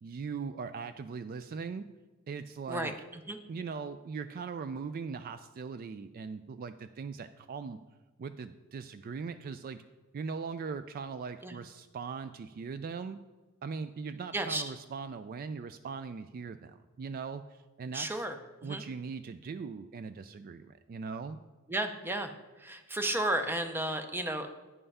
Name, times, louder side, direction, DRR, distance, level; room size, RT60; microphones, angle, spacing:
voice 1, 0.0-1.9 2.3-2.9 3.5-7.8 8.2-9.8 10.1-13.2 13.6-18.3 18.6-21.4, right 5 dB, 45° right, 11 dB, 0.3 m, -40 dB
voice 2, 14.3-14.6 17.9-18.3 18.6-18.8 21.7-22.3 22.6-24.5, right 1 dB, 10° right, 7 dB, 0.6 m, -33 dB
9.6 x 5.6 x 5.5 m, 1.2 s
head